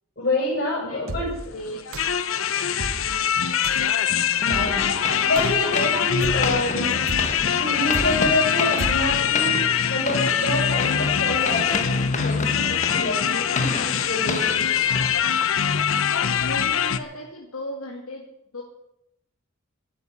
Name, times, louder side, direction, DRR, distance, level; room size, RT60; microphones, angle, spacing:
voice 1, 0.2-1.3 4.3-4.8 5.2-7.0 7.5-9.6 9.9-14.7, left 2 dB, 50° left, -4 dB, 6.4 m, -27 dB
voice 2, 0.8-2.6 2.9-3.3 14.8-15.1 16.2-18.2 18.5-18.6, left 1 dB, 90° left, -1 dB, 2.5 m, -37 dB
sound 1, 1.1-1.5 1.9-2.3 2.8-3.2 3.6-3.9 4.5-4.9 5.4-5.8 6.2-6.6 7.1-7.5 7.9-8.4 8.8-9.2, right 2 dB, 85° right, 1.1 m, -33 dB
sound 2, 1.4-17.0, left 8 dB, 70° left, 0.8 m, -23 dB
sound 3, 4.4-15.7, left 4 dB, 35° left, 1.6 m, -32 dB
12.5 x 9.9 x 9.7 m, 0.81 s
head